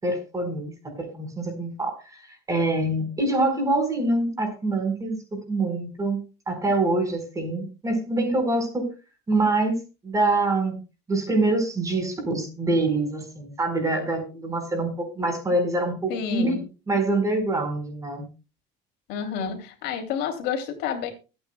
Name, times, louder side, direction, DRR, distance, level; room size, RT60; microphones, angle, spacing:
voice 1, 0.0-5.2 5.5-6.2 6.5-8.9 9.3-9.7 10.0-10.8 11.1-16.6 16.9-18.3, right 2 dB, 20° right, 6 dB, 4.5 m, -25 dB
voice 2, 16.1-16.6 19.1-21.1, left 7 dB, 70° left, 4 dB, 2.8 m, -29 dB
24.0 x 8.9 x 2.2 m, 0.30 s
cardioid pair, 135°, 18 cm